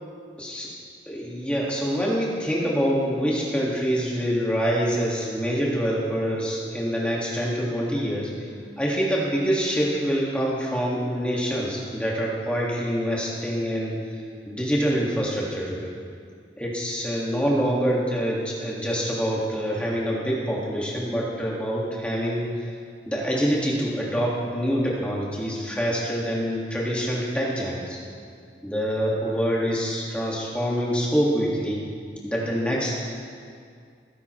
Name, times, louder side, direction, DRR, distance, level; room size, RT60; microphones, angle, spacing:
voice 1, 1.1-8.3 8.8-14.0 14.5-15.9 16.6-22.5 23.1-28.0 28.6-31.8 32.2-32.9, equal, 5° left, -4 dB, 1.8 m, -25 dB
17.0 x 9.5 x 3.1 m, 2.2 s
head